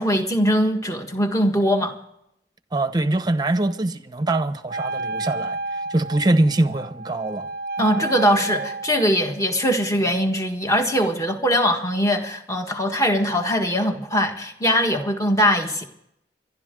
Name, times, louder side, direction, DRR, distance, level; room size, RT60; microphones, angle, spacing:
voice 1, 0.0-1.9 7.8-15.8, equal, 20° left, 1.6 m, -21 dB
voice 2, 2.7-5.6 5.9-7.5, right 2 dB, 25° right, 0.9 m, -23 dB
Wind instrument woodwind instrument, 4.7-9.2, right 3 dB, 55° right, 0.6 m, -31 dB
29.0 x 12.0 x 3.8 m
head